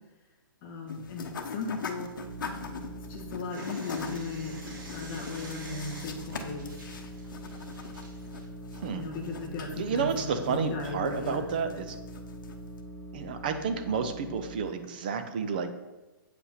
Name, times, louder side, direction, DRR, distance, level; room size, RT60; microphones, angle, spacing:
voice 1, 0.6-2.1 3.1-6.2 6.4-6.6 8.9-11.4, left 4 dB, 15° left, -2 dB, 1.2 m, -36 dB
sound 1, 0.9-12.8, left 5 dB, 60° left, 1.1 m, -42 dB
sound 2, 2.2-3.4 3.9-14.7, right 1 dB, 45° right, 2.0 m, -43 dB
Someone washing their hands, 3.5-8.5, right 2 dB, 65° right, 2.6 m, -47 dB
voice 2, 9.8-12.0 13.1-15.7, right 6 dB, 25° right, 8 dB, 0.5 m, -31 dB
8.2 x 5.6 x 5.7 m, 1.1 s
hypercardioid pair, 180°, 12 cm